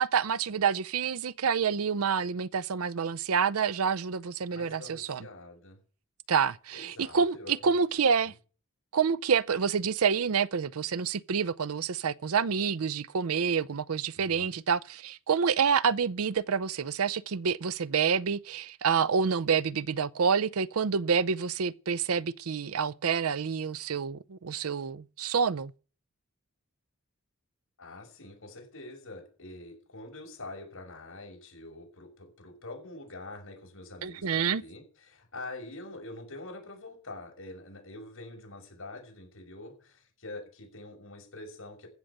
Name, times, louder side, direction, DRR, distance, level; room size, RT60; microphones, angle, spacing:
voice 1, 0.0-5.3 6.3-8.3 8.9-25.7 34.0-34.6, right 6 dB, 80° right, 0.6 m, -28 dB
voice 2, 4.4-5.8 6.7-7.7 14.1-14.5 27.8-41.9, left 2 dB, 70° left, 6.1 m, -45 dB
15.0 x 6.6 x 8.7 m
head